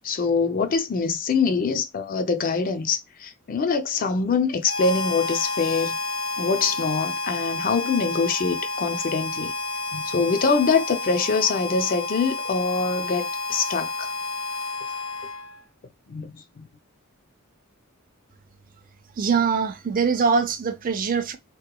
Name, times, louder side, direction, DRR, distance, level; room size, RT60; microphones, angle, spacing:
voice 1, 0.0-6.0 6.4-9.5 9.9-14.1 16.1-16.7, left 4 dB, 40° left, 0.4 m, -24 dB
Harmonica, 4.6-15.7, left 3 dB, 70° left, 0.8 m, -30 dB
voice 2, 19.2-21.4, right 5 dB, 40° right, 0.4 m, -23 dB
2.9 x 2.1 x 2.2 m
head